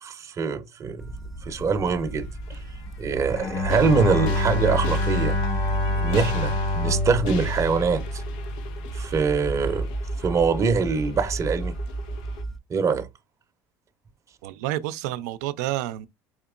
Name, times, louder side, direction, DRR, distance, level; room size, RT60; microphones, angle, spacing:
voice 1, 0.0-1.0 1.4-2.3 3.0-5.4 5.9-8.2 8.9-9.9 10.2-11.8 12.7-13.1, right 5 dB, 35° right, 0.7 m, -24 dB
sound 1, 1.0-12.6, right 1 dB, 5° left, 0.6 m, -32 dB
sound 2, 2.2-12.4, left 6 dB, 75° left, 0.7 m, -42 dB
Bowed string instrument, 3.3-8.6, left 2 dB, 40° left, 1.9 m, -27 dB
voice 2, 14.4-16.1, right 14 dB, 85° right, 0.4 m, -29 dB
4.4 x 2.9 x 2.3 m
supercardioid pair, 90°, 9 cm